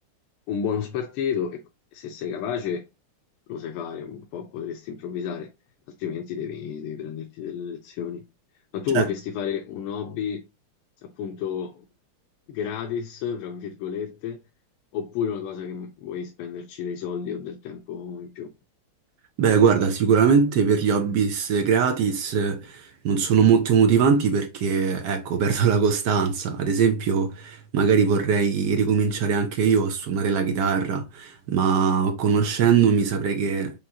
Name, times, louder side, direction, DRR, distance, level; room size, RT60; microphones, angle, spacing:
voice 1, 0.5-2.9 3.5-5.5 5.9-8.2 8.7-10.4 11.0-11.8 12.5-14.4 14.9-18.5, left 7 dB, 90° left, 1.5 m, -31 dB
voice 2, 19.4-33.8, right 6 dB, 70° right, 1.0 m, -21 dB
5.1 x 3.0 x 2.8 m
omnidirectional pair, 2.4 m